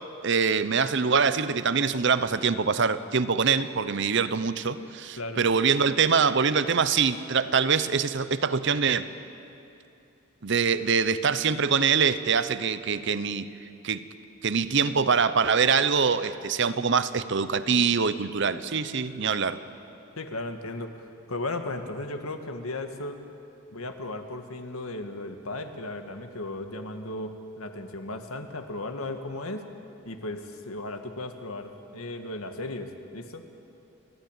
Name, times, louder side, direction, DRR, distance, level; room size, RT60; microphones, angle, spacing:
voice 1, 0.2-9.1 10.4-13.5 13.8-14.0 14.4-19.6, right 5 dB, 55° right, 13 dB, 0.7 m, -24 dB
voice 2, 20.2-23.2 23.7-29.7 30.1-33.4, left 2 dB, 85° left, 6 dB, 1.6 m, -36 dB
30.0 x 12.0 x 9.0 m, 2.8 s
head